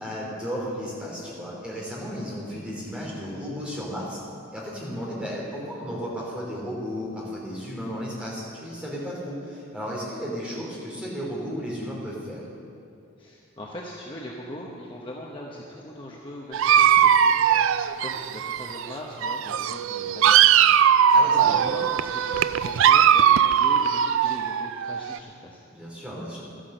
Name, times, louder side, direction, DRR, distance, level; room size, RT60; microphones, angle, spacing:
voice 1, 0.0-4.2 4.5-12.4 21.1-21.8 25.7-26.4, equal, 5° right, -5 dB, 3.0 m, -34 dB
voice 2, 13.2-17.5 18.0-21.1 21.4-25.6, equal, 25° left, -3 dB, 0.9 m, -40 dB
Dog, 16.5-18.9 19.2-25.2, right 8 dB, 65° right, 0.3 m, -20 dB
13.0 x 10.0 x 6.6 m, 2.5 s
head